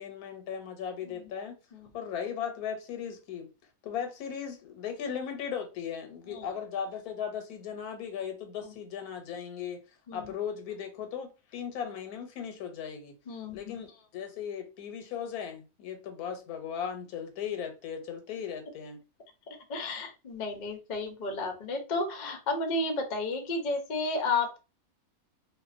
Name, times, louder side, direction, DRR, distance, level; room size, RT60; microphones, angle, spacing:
voice 1, 0.0-1.6 1.9-3.5 3.8-9.8 10.1-13.2 13.5-19.0, left 8 dB, 90° left, 1.1 m, -37 dB
voice 2, 13.3-13.8 19.7-24.6, left 3 dB, 60° left, 0.4 m, -32 dB
2.5 x 2.0 x 2.4 m
omnidirectional pair, 1.6 m